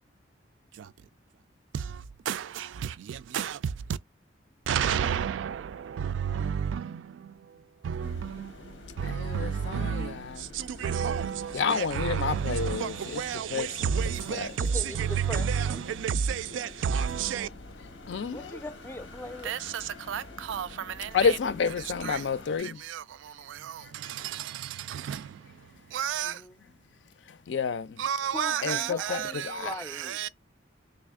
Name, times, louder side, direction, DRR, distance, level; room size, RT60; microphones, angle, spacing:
voice 1, 4.7-5.3 10.8-11.3 14.0-14.1 16.0-16.1 16.8-17.5 19.5-19.6 20.1-20.2 20.5-20.6 26.0-26.3 28.0-28.9, right 8 dB, 90° right, 0.3 m, -28 dB
sound 1, 8.0-22.6, left 2 dB, 85° left, 0.9 m, -47 dB
voice 2, 9.0-10.4 11.5-13.2 13.5-13.9 14.3-14.5 18.1-18.4 21.1-22.8 27.5-28.0 28.6-29.2 29.5-29.7, left 6 dB, 70° left, 0.4 m, -29 dB
voice 3, 14.6-15.8 18.3-19.6 26.2-26.7 28.3-30.2, left 2 dB, 10° left, 0.4 m, -40 dB
3.4 x 2.4 x 3.5 m
head